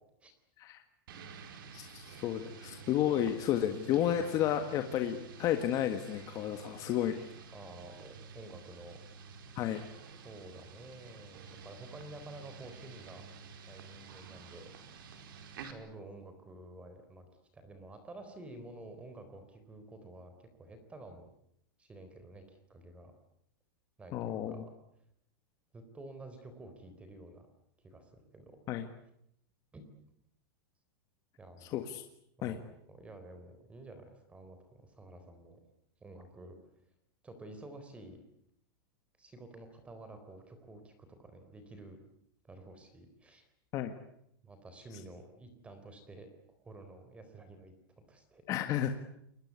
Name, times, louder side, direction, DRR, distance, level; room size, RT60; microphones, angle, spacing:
sound 1, 1.1-15.7, right 5 dB, 70° right, 4.8 m, -50 dB
voice 1, 1.7-7.3 9.5-9.8 24.1-24.6 28.7-28.9 31.6-32.0 32.4-32.6 43.7-43.9 48.5-48.9, left 11 dB, 30° left, 6 dB, 1.8 m, -32 dB
voice 2, 7.5-9.0 10.2-13.2 13.7-14.7 15.6-17.3 17.5-21.3 21.8-23.1 24.0-24.7 25.7-27.5 27.8-28.6 29.7-29.8 31.4-31.8 32.4-35.6 36.0-36.6 37.2-38.2 39.2-42.0 42.4-43.4 44.4-46.3 46.6-47.7 48.1-48.4, right 2 dB, 10° right, 8 dB, 3.9 m, -50 dB
28.5 x 22.5 x 8.4 m, 0.74 s
supercardioid pair, 160°, 12 cm